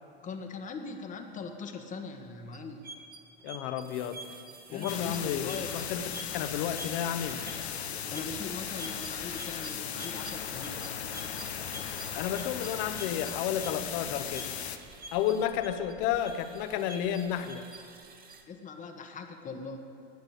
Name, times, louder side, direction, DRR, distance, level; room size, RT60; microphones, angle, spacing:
voice 1, 0.2-2.8 4.7-5.8 8.1-10.8 18.4-19.8, left 4 dB, 25° left, 5 dB, 1.3 m, -41 dB
sound 1, 2.5-18.4, right 3 dB, 25° right, 1.6 m, -48 dB
voice 2, 3.4-4.2 4.7-6.0 6.3-7.4 12.1-14.5 15.1-17.7, left 9 dB, 50° left, 9 dB, 1.2 m, -31 dB
sound 2, 4.9-14.8, left 8 dB, 75° left, 1.0 m, -37 dB
19.0 x 6.8 x 8.5 m, 2.5 s
figure-of-eight pair, 85°, 33 cm